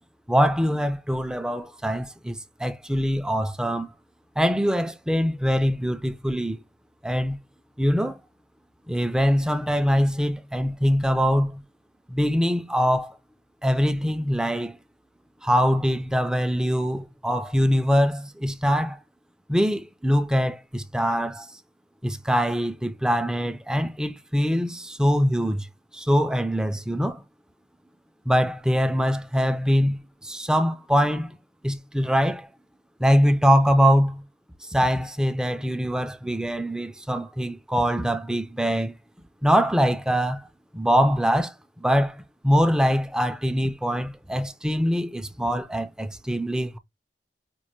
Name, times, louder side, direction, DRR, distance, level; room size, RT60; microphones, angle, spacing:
voice 1, 0.3-3.9 4.4-6.6 7.0-7.4 7.8-8.2 8.9-11.6 12.1-13.2 13.6-14.8 15.4-19.0 19.5-21.5 22.0-25.7 25.9-27.2 28.3-31.4 31.6-32.5 33.0-34.2 34.7-38.9 39.4-40.5 40.7-46.8, equal, 5° right, 0.4 m, -23 dB
5.2 x 2.1 x 3.0 m
head